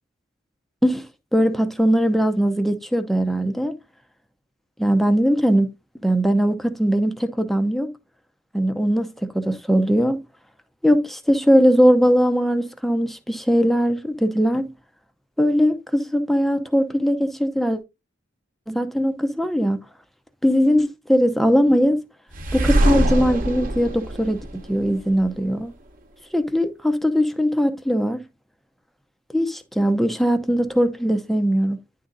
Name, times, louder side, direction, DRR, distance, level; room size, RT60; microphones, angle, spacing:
voice 1, 1.3-3.8 4.8-5.7 6.0-7.9 8.5-10.2 10.8-14.7 15.4-17.8 18.7-19.8 20.4-22.0 22.5-25.7 26.3-28.2 29.3-31.8, equal, ahead, 0.7 m, -20 dB
sound 1, 22.3-25.3, right 1 dB, 45° right, 1.1 m, -23 dB
10.0 x 3.9 x 3.9 m
head